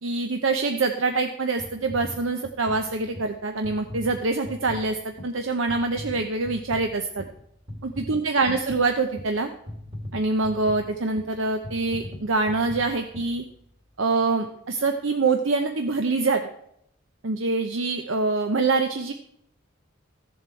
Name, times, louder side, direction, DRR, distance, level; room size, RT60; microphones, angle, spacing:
voice 1, 0.0-7.2 7.8-9.5 10.1-13.4 14.0-16.4 17.2-19.1, right 3 dB, 70° right, 5 dB, 0.8 m, -25 dB
sound 1, 1.6-14.0 14.6-14.7, left 1 dB, 30° right, 1.9 m, -41 dB
14.0 x 7.4 x 4.5 m, 0.71 s
head